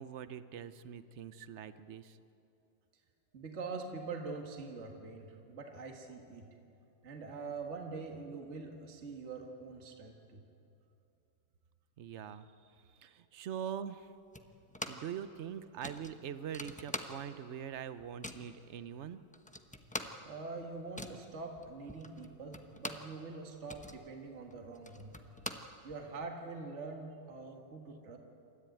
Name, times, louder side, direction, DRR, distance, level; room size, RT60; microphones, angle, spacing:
voice 1, 0.0-2.2 12.0-12.5 13.0-14.1 14.9-19.2, right 8 dB, 70° right, 12 dB, 0.6 m, -43 dB
voice 2, 3.3-6.4 7.0-10.4 20.2-25.2 25.8-28.2, right 4 dB, 40° right, 2 dB, 1.9 m, -44 dB
sound 1, 14.3-15.2 15.4-15.5 15.8-17.5 17.8-18.5 19.0-19.1 19.3-23.2 23.5-26.3, left 1 dB, 10° left, 0.5 m, -44 dB
27.5 x 13.5 x 9.2 m, 2.7 s
omnidirectional pair, 2.0 m